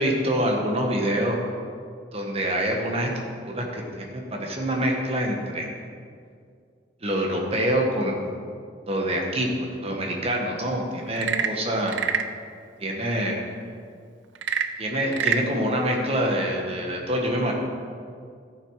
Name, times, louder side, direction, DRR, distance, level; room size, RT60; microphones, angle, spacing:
voice 1, 0.0-1.4 2.1-5.7 7.0-8.2 8.9-11.9 12.8-13.4 14.8-17.5, equal, 30° right, 0 dB, 1.5 m, -26 dB
Frog / Percussion / Wood, 11.1-12.4 14.3-15.5, right 7 dB, 75° right, 0.5 m, -26 dB
13.0 x 7.3 x 4.9 m, 2.2 s
head